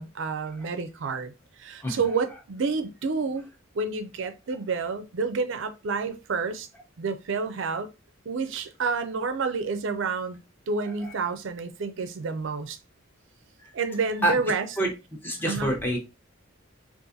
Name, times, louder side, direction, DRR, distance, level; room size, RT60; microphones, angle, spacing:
voice 1, 0.0-1.3 1.6-3.4 3.7-6.7 7.0-7.9 8.3-10.4 10.7-12.8 13.7-14.7 15.5-15.7, right 4 dB, 60° right, 0.4 m, -29 dB
voice 2, 15.2-16.0, right 1 dB, 10° left, 0.8 m, -26 dB
3.9 x 2.5 x 2.6 m
head